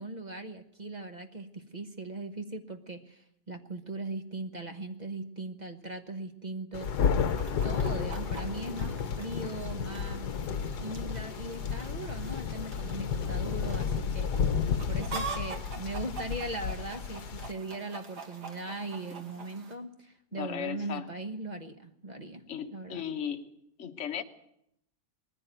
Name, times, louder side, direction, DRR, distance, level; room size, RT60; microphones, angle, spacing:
voice 1, 0.0-7.2 7.6-10.3 10.8-14.6 14.8-22.4 22.7-23.0, right 2 dB, 30° right, 1.1 m, -39 dB
Thunder, 6.7-17.5, left 6 dB, 70° left, 1.5 m, -32 dB
Chicken rooster, 6.8-19.8, right 4 dB, 70° right, 2.8 m, -45 dB
voice 2, 20.3-21.0 22.5-23.5 23.8-24.2, left 8 dB, 45° left, 1.4 m, -36 dB
20.0 x 15.0 x 9.2 m
omnidirectional pair, 1.9 m